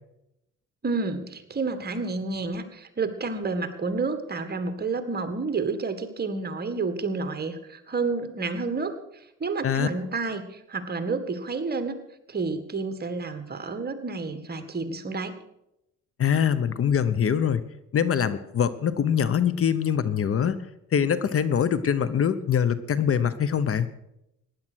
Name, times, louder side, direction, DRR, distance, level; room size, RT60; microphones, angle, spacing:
voice 1, 0.8-8.9 9.4-12.0 12.3-15.3, right 4 dB, 30° right, 9 dB, 1.8 m, -30 dB
voice 2, 16.2-17.6 17.9-20.6 20.9-23.9, left 8 dB, 50° left, 15 dB, 0.9 m, -23 dB
15.5 x 10.5 x 6.3 m, 0.84 s
cardioid pair, 90°, 30 cm